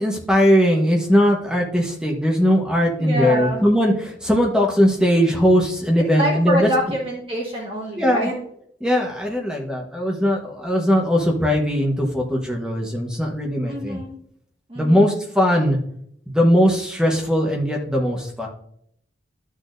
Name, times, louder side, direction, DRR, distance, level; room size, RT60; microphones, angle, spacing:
voice 1, 0.0-6.7 7.9-8.3 8.8-14.0 14.7-15.8 16.3-18.5, equal, 5° right, -1 dB, 1.2 m, -19 dB
voice 2, 3.0-3.6 6.2-8.3 13.7-14.2 14.7-15.1, equal, 30° right, -3 dB, 1.6 m, -25 dB
12.5 x 6.4 x 2.6 m, 0.71 s
head